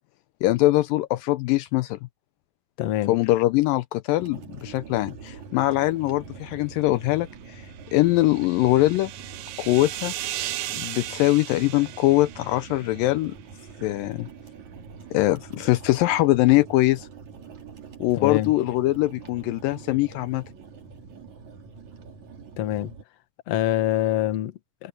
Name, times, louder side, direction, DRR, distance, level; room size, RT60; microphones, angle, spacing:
voice 1, 0.4-2.0 3.1-7.6 7.9-9.1 9.6-10.1 10.7-13.3 13.8-14.3 15.1-17.1 18.0-20.4, left 17 dB, 80° left, 2.2 m, -22 dB
voice 2, 2.8-3.2 18.2-18.5 22.6-22.9 23.5-24.9, left 13 dB, 60° left, 2.0 m, -25 dB
sound 1, 4.2-23.0, right 5 dB, 55° right, 4.1 m, -44 dB
sound 2, 7.6-13.2, right 14 dB, 80° right, 2.8 m, -36 dB
omnidirectional pair, 4.2 m